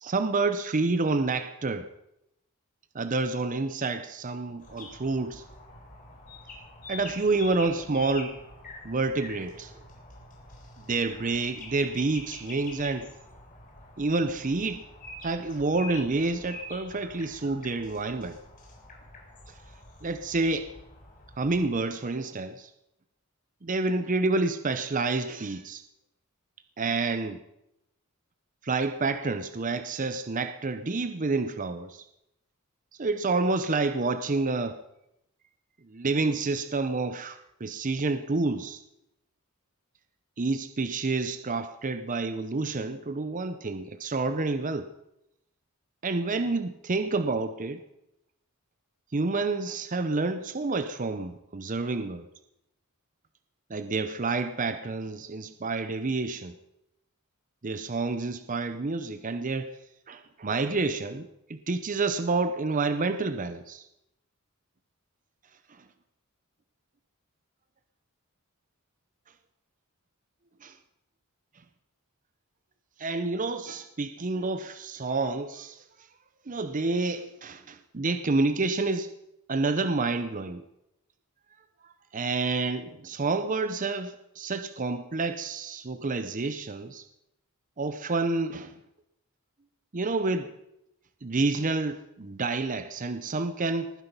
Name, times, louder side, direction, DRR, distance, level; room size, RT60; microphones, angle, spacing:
voice 1, 0.0-1.9 2.9-5.4 6.9-8.4 8.8-9.7 10.9-13.1 14.0-14.8 15.2-18.4 20.0-20.7 21.4-22.7 23.6-25.8 26.8-27.4 28.6-32.0 33.0-34.8 35.9-38.8 40.4-44.9 46.0-47.8 49.1-52.3 53.7-56.6 57.6-59.8 60.1-63.9 65.7-65.8 70.6-70.8 73.0-75.8 76.5-79.1 79.5-80.6 82.1-87.1 87.8-88.8 89.9-90.5 91.2-93.9, right 3 dB, 35° right, 10 dB, 0.7 m, -29 dB
sound 1, 4.6-21.8, left 2 dB, 40° left, 3.7 m, -46 dB
19.5 x 10.0 x 5.4 m, 0.84 s
head